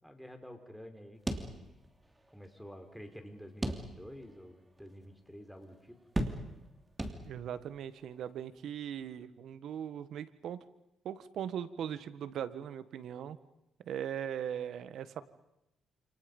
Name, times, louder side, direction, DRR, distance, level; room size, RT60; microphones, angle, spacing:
voice 1, 0.0-1.6 2.3-6.0, equal, ahead, 6 dB, 4.7 m, -50 dB
sound 1, 1.3-2.1 2.4-2.5 3.6-4.3 4.8-4.9 6.2-6.7 7.0-7.6, right 1 dB, 15° right, 3.1 m, -36 dB
voice 2, 7.2-10.6 11.0-13.4 13.8-15.2, right 9 dB, 70° right, 13 dB, 1.6 m, -39 dB
28.5 x 28.0 x 5.5 m, 0.87 s
cardioid pair, 90°, 0 cm